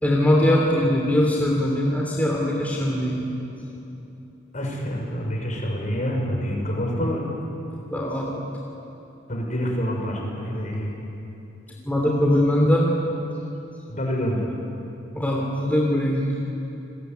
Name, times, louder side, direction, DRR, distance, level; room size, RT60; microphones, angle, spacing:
voice 1, 0.0-3.2 3.7-3.9 7.9-8.4 11.7-12.9 15.1-16.3, left 1 dB, 10° left, -2 dB, 3.1 m, -21 dB
voice 2, 4.5-7.2 9.3-10.9 13.9-14.5, equal, 40° left, 0 dB, 6.1 m, -27 dB
29.0 x 21.0 x 9.3 m, 2.9 s
head